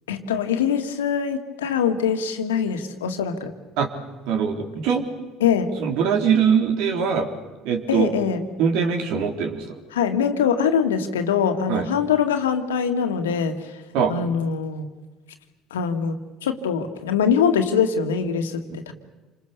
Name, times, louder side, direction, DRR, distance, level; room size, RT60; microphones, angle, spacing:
voice 1, 0.1-3.5 5.4-5.7 7.9-8.5 9.9-13.7 14.1-14.9 15.7-18.9, left 7 dB, 85° left, 7 dB, 2.0 m, -23 dB
voice 2, 4.3-5.0 5.8-7.3 7.6-8.1 8.6-9.6 11.7-11.9 13.9-14.1, right 7 dB, 70° right, 5 dB, 3.6 m, -22 dB
28.0 x 26.5 x 6.9 m, 1.2 s
hypercardioid pair, 60°, 0 cm